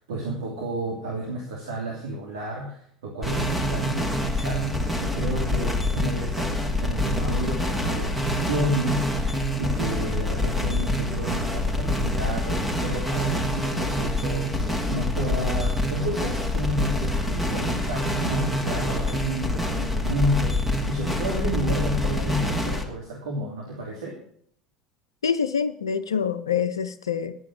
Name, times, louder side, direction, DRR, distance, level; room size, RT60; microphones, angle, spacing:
voice 1, 0.0-24.2, right 1 dB, 65° right, -3 dB, 2.8 m, -31 dB
sound 1, 3.2-22.8, left 1 dB, 5° right, 2.3 m, -26 dB
voice 2, 25.2-27.4, left 7 dB, 75° left, 10 dB, 0.5 m, -26 dB
11.0 x 8.5 x 7.2 m, 0.63 s
figure-of-eight pair, 70°, 3 cm